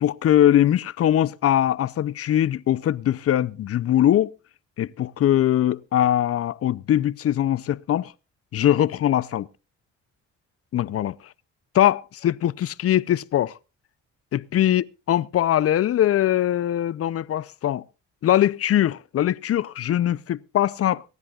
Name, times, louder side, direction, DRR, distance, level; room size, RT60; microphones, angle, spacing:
voice 1, 0.0-4.3 4.8-8.1 8.5-9.5 10.7-11.2 11.7-13.5 14.3-17.8 18.2-21.0, left 11 dB, 50° left, 0.5 m, -21 dB
24.0 x 10.5 x 2.4 m
cardioid pair, 90°, 30 cm